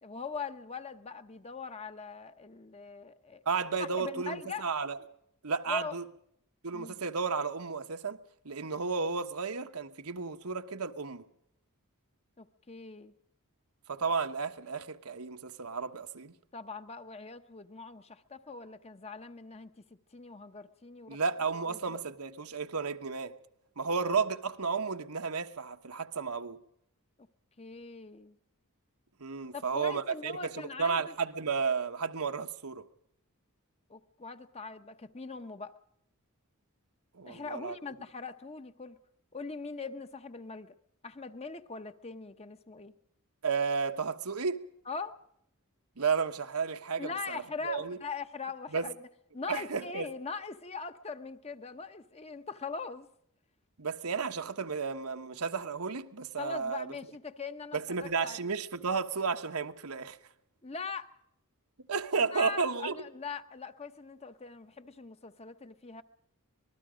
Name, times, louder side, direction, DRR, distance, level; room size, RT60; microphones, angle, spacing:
voice 1, 0.0-3.4 3.8-4.7 5.7-6.0 6.7-7.0 12.4-13.1 16.5-19.7 20.1-21.2 21.7-22.0 27.6-28.4 29.5-31.1 33.9-35.7 37.2-39.0 39.3-40.8 41.0-42.9 44.9-45.2 47.0-48.9 49.3-53.1 56.4-58.5 60.6-61.1 62.3-66.0, left 4 dB, 30° left, 0.9 m, -41 dB
voice 2, 3.4-5.0 5.4-6.0 6.6-8.2 8.4-11.2 13.9-16.3 21.1-23.3 23.8-26.6 29.2-32.9 37.1-37.8 43.4-44.6 46.0-48.0 48.7-48.9 49.5-50.1 53.8-56.9 57.7-60.2 61.9-63.0, right 5 dB, 85° right, 1.3 m, -33 dB
25.5 x 20.0 x 5.1 m
head